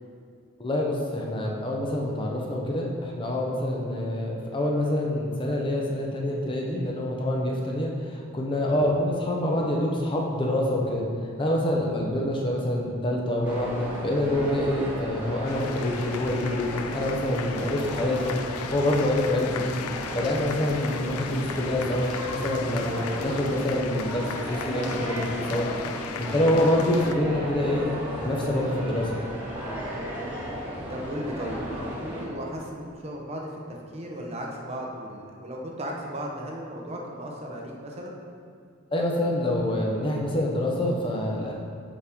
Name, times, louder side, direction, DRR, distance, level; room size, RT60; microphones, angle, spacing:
voice 1, 0.6-11.0 11.4-13.7 14.0-18.4 18.7-19.7 20.1-25.7 26.2-27.9 28.2-29.2 38.9-41.5, left 1 dB, 25° left, -1 dB, 0.6 m, -26 dB
sound 1, 13.4-32.2, equal, 10° right, 1.2 m, -35 dB
sound 2, 15.5-27.1, left 8 dB, 85° left, 0.3 m, -38 dB
voice 2, 17.6-17.9 20.6-20.7 22.9-23.2 29.9-30.2 30.9-38.1, equal, 30° right, -1 dB, 0.7 m, -36 dB
sound 3, 17.8-23.8, right 1 dB, 85° right, 0.7 m, -46 dB
7.0 x 5.2 x 3.5 m, 2.2 s
head